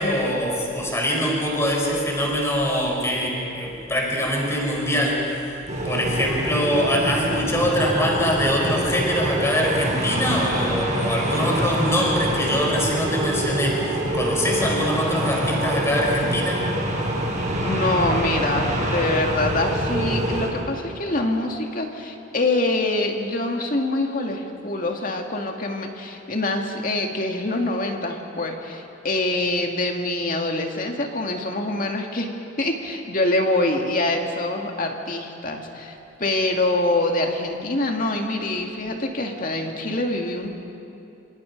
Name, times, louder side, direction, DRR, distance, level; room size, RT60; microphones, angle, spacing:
voice 1, 0.0-5.5 5.8-16.7, equal, 15° left, -1 dB, 4.5 m, -23 dB
sound 1, 5.7-20.5, right 1 dB, 35° right, 6.0 m, -25 dB
voice 2, 17.6-32.3 32.6-40.5, left 2 dB, 40° left, 2 dB, 2.3 m, -25 dB
27.0 x 26.5 x 5.3 m, 2.8 s
head